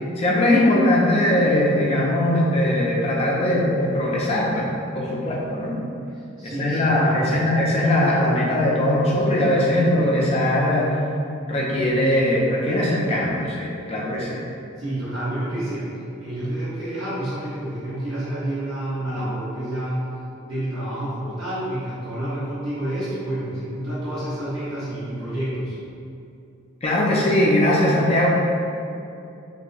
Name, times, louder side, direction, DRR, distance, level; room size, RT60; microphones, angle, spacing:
voice 1, 0.2-5.8 6.4-11.0 11.5-14.4 26.8-28.3, left 1 dB, 30° left, -4 dB, 0.5 m, -20 dB
voice 2, 6.4-7.4 14.8-15.9 16.2-20.1 20.4-25.7, right 1 dB, 75° right, -13 dB, 0.9 m, -29 dB
2.6 x 2.1 x 3.9 m, 2.7 s
head